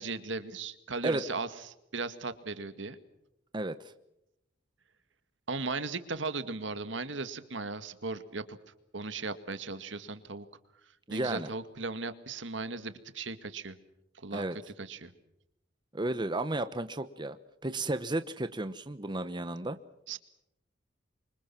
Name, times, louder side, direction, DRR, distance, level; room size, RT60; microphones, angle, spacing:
voice 1, 0.0-1.5 1.9-3.0 5.5-8.6 8.9-10.5 11.1-13.8 14.2-14.5 14.8-15.1 20.1-20.2, right 3 dB, 70° right, 11 dB, 2.0 m, -37 dB
voice 2, 3.5-3.9 11.1-11.5 14.3-14.6 15.9-17.4 17.6-19.8, right 2 dB, 25° right, 10 dB, 1.0 m, -33 dB
27.5 x 25.0 x 6.1 m, 0.84 s
head